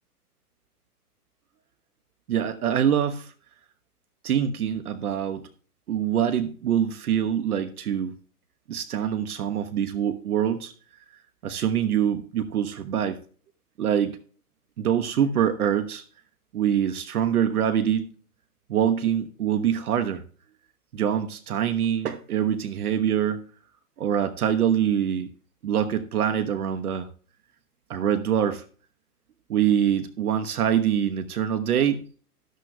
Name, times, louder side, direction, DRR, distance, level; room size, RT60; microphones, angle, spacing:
voice 1, 2.3-3.3 4.2-5.4 5.9-8.1 8.7-10.7 11.4-13.2 13.8-14.2 14.8-16.0 16.5-18.1 18.7-20.2 20.9-23.4 24.0-25.3 25.6-27.1 27.9-28.6 29.5-32.0, right 9 dB, 65° right, 10 dB, 1.2 m, -24 dB
13.0 x 13.0 x 2.3 m, 0.42 s
hypercardioid pair, 130°, 47 cm